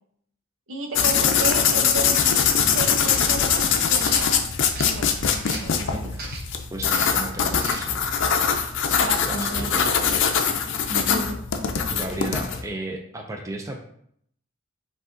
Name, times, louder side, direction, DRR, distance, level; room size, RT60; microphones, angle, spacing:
voice 1, 0.7-2.4 2.7-4.4 4.9-6.0 9.0-10.2 10.9-11.4 11.7-11.8, right 2 dB, 80° right, 3 dB, 0.8 m, -32 dB
sound 1, 0.9-12.6, left 7 dB, 65° left, 0.5 m, -22 dB
sound 2, 2.2-2.5 3.1-3.3 3.9-4.9 5.4-5.7 6.1-6.5 6.9-7.2 7.6-7.8, right 3 dB, 50° right, 0.9 m, -36 dB
voice 2, 5.9-6.2 6.7-8.0 9.2-9.9 11.9-13.8, right 2 dB, 15° right, 3 dB, 0.4 m, -34 dB
5.0 x 2.4 x 3.8 m, 0.68 s
head